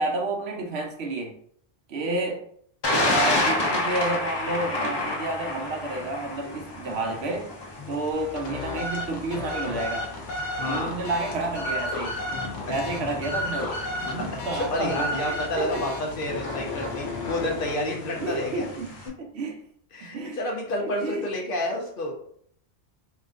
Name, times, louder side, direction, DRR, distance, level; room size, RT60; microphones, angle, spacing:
voice 1, 0.0-1.3 1.9-2.4 3.0-7.5 7.9-10.1 10.7-12.2 12.7-15.9 18.2-18.9 19.2-19.6 20.0-20.4 20.8-21.2, right 2 dB, 70° right, 0.8 m, -30 dB
Thunder, 2.8-19.1, left 2 dB, 40° left, 0.3 m, -32 dB
sound 1, 8.1-18.7, left 2 dB, 80° left, 1.0 m, -33 dB
voice 2, 10.5-11.0 12.6-12.7 14.1-18.7 19.9-22.1, left 1 dB, 55° left, 0.8 m, -30 dB
3.6 x 2.4 x 2.4 m
omnidirectional pair, 1.2 m